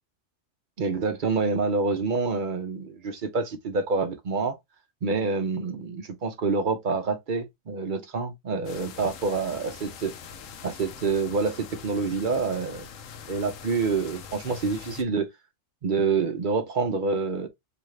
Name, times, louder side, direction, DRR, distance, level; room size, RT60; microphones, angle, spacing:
voice 1, 0.8-4.6 5.0-10.1 10.6-12.9 13.3-15.3 15.8-17.5, right 4 dB, 50° right, 0.7 m, -27 dB
sound 1, 8.6-15.0, left 6 dB, 85° left, 1.1 m, -43 dB
4.8 x 2.4 x 3.1 m
omnidirectional pair, 1.3 m